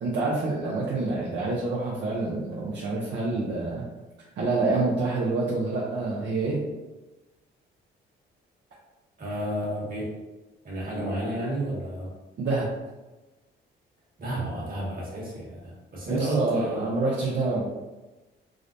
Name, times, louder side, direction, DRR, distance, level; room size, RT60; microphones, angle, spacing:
voice 1, 0.0-3.8 4.3-6.6 12.4-12.7 16.1-17.6, right 3 dB, 65° right, -5 dB, 0.7 m, -27 dB
voice 2, 9.2-10.1 10.6-12.1 14.2-17.0, right 1 dB, 50° right, -4 dB, 1.5 m, -31 dB
4.8 x 2.1 x 2.6 m, 1.1 s
cardioid pair, 90°, 20 cm